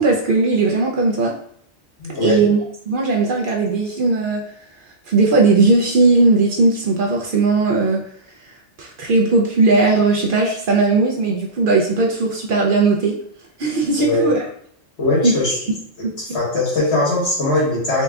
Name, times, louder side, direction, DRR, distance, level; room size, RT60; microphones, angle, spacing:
voice 1, 0.0-1.3 2.2-2.6 2.9-4.4 5.1-8.0 8.8-13.2 13.6-14.4 15.2-15.3 16.0-16.1, right 3 dB, 60° right, 0 dB, 0.7 m, -17 dB
voice 2, 2.0-2.4 14.0-14.2 15.0-15.6 16.0-18.0, left 2 dB, 70° left, -5 dB, 1.7 m, -20 dB
4.0 x 2.3 x 3.4 m, 0.66 s
omnidirectional pair, 1.2 m